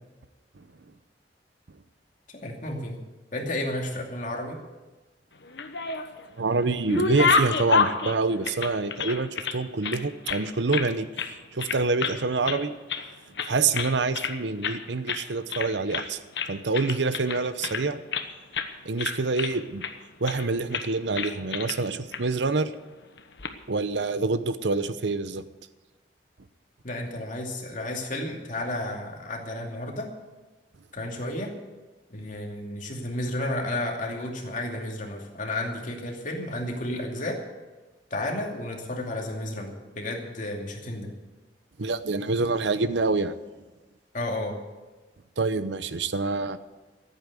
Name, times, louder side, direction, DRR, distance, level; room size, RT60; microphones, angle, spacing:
voice 1, 2.3-3.0 3.3-4.6 26.8-30.1 30.9-31.5 32.1-37.4 38.1-41.1 44.1-44.6, left 1 dB, 45° left, 1 dB, 2.6 m, -32 dB
sound 1, 5.4-6.3 6.6-9.6 9.8-10.9 11.2-11.3 11.6-12.2 12.4-13.1 13.4-14.4 14.6-14.8 15.1-15.2 15.5-16.1 16.4-18.3 18.5-18.7 19.0-19.9 20.3-20.5 20.7-20.9 21.2-21.8 22.1-22.2 23.2-23.5, left 5 dB, 70° left, 1.2 m, -28 dB
voice 2, 6.4-11.1 11.5-12.7 13.4-16.2 16.5-18.0 18.8-19.8 20.2-22.7 23.7-25.4 41.8-43.3 45.4-46.6, right 3 dB, 80° right, 13 dB, 0.8 m, -26 dB
15.0 x 8.8 x 8.1 m, 1.2 s
head